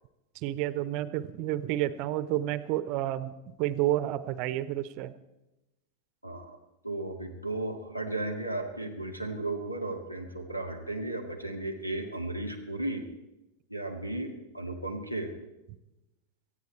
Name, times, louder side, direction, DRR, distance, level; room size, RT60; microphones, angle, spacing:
voice 1, 0.3-5.1, right 14 dB, 40° right, 16 dB, 0.8 m, -30 dB
voice 2, 6.8-13.1 13.7-15.3, right 2 dB, 90° left, 6 dB, 1.9 m, -35 dB
18.5 x 14.0 x 4.4 m, 0.96 s
figure-of-eight pair, 90°, 0 cm